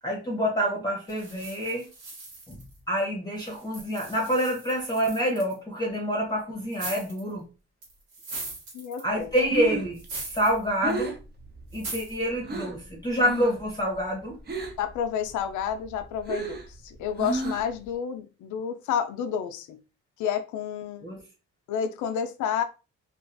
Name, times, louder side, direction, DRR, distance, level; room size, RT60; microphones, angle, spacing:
voice 1, 0.0-1.9 2.5-2.6 2.9-7.4 9.0-10.0 10.3-11.2 11.7-14.4 21.0-21.2, equal, 15° left, 0.8 m, -27 dB
sound 1, 1.1-3.0 3.4-5.5 6.7-7.3 7.8-9.2 9.9-10.6 10.9-11.0 11.7-12.2, right 3 dB, 90° right, 1.2 m, -40 dB
voice 2, 8.7-9.3 14.8-19.8 20.2-21.1 21.7-22.6, left 8 dB, 80° left, 0.5 m, -30 dB
Breathing, 9.2-12.8 13.2-13.7 13.9-14.9 15.3-17.9, right 2 dB, 35° right, 0.6 m, -33 dB
2.5 x 2.3 x 2.5 m
cardioid pair, 90°, 30 cm